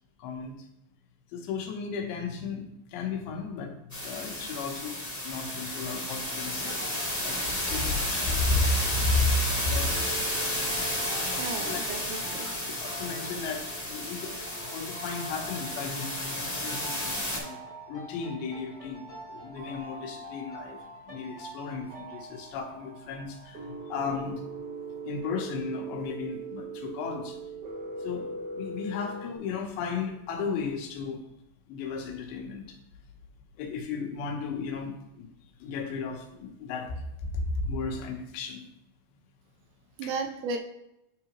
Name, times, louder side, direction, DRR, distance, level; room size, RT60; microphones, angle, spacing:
voice 1, 0.2-0.7 1.3-3.8 4.0-6.7 7.2-10.1 11.1-11.2 11.5-11.8 12.6-17.6 17.9-19.0 19.3-20.8 21.1-24.4 25.1-27.4 28.0-31.2 31.7-32.8 33.6-35.3 35.6-38.6 40.0-40.1, left 4 dB, 85° left, 3 dB, 3.2 m, -34 dB
sound 1, 3.9-17.4, left 1 dB, 20° left, 0.4 m, -32 dB
sound 2, 6.6-22.2, right 1 dB, 35° right, 0.7 m, -49 dB
sound 3, 9.9-29.3, right 2 dB, 60° right, 1.5 m, -43 dB
voice 2, 11.4-12.5 40.0-40.6, right 4 dB, 80° right, 4 dB, 2.5 m, -34 dB
9.9 x 4.7 x 3.0 m, 0.85 s
omnidirectional pair, 4.9 m